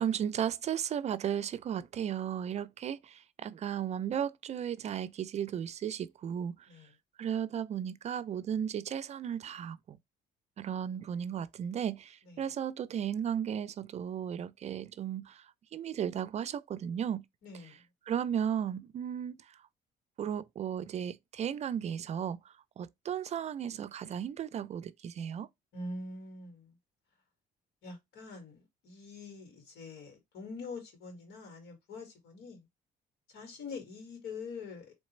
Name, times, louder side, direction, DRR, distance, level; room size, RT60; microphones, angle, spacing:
voice 1, 0.0-6.6 7.2-10.0 10.6-15.4 15.7-17.2 18.1-19.4 20.2-22.4 22.8-25.5, right 9 dB, 40° right, 0.4 m, -35 dB
voice 2, 17.4-17.8 25.7-26.7 27.8-32.6 33.3-34.9, left 3 dB, 80° left, 2.1 m, -44 dB
4.1 x 3.2 x 3.1 m
cardioid pair, 110°, 17 cm